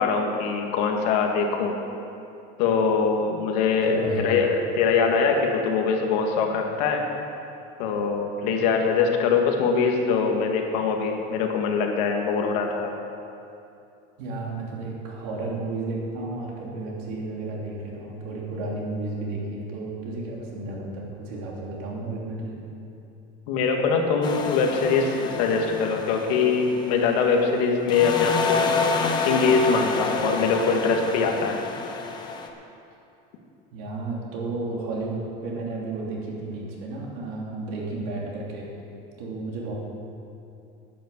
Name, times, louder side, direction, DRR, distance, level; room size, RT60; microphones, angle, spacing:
voice 1, 0.0-1.8 2.6-7.0 7.8-12.9 23.5-28.7 29.2-31.6, left 5 dB, 80° left, 3 dB, 1.7 m, -23 dB
voice 2, 3.9-4.3 14.2-22.6 32.9-33.0 33.7-38.7 39.2-39.7, right 2 dB, 70° right, -3 dB, 3.2 m, -32 dB
sound 1, 24.2-27.6 27.9-32.5, left 4 dB, 20° left, 0.7 m, -28 dB
10.5 x 9.5 x 7.2 m, 2.6 s
cardioid pair, 180°, 21 cm